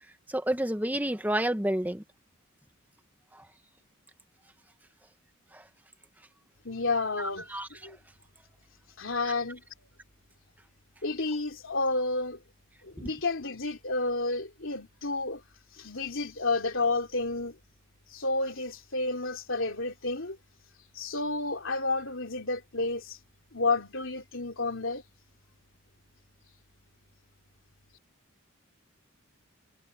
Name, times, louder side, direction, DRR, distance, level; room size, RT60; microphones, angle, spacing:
voice 1, 0.3-2.0 5.5-5.6 7.2-7.7 13.0-13.1, right 1 dB, 10° right, 1.3 m, -29 dB
voice 2, 6.6-7.5 7.8-8.0 9.0-9.6 11.0-12.4 12.8-15.4 15.8-17.6 18.1-20.4 21.0-23.2 23.5-25.0, left 3 dB, 60° left, 3.5 m, -30 dB
head